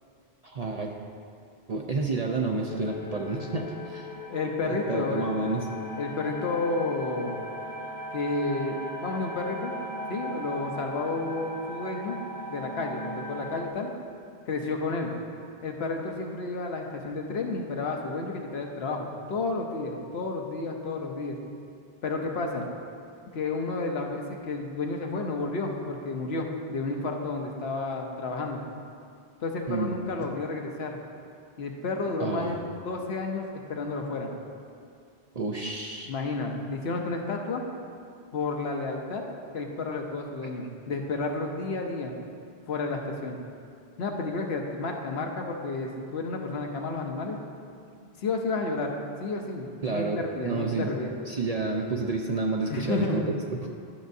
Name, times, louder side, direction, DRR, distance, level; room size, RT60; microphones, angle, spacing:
voice 1, 0.4-0.9 1.7-4.1 4.7-5.6 29.7-30.0 32.2-32.5 35.3-36.1 49.8-50.9 51.3-53.3, right 3 dB, 50° right, 1 dB, 0.5 m, -30 dB
sound 1, 2.7-13.7, left 1 dB, 40° left, 0.6 m, -38 dB
voice 2, 4.3-5.3 6.0-7.4 8.1-9.7 10.1-12.2 12.5-13.9 14.5-15.1 15.6-21.4 22.0-22.7 23.3-28.6 29.4-31.0 31.6-33.4 33.7-34.3 36.0-37.6 38.3-39.2 39.5-42.1 42.7-43.4 44.0-47.4 48.2-48.9 49.2-51.1 52.7-53.3, left 3 dB, 70° left, 2 dB, 1.0 m, -31 dB
11.5 x 6.3 x 2.6 m, 2.4 s
omnidirectional pair, 1.1 m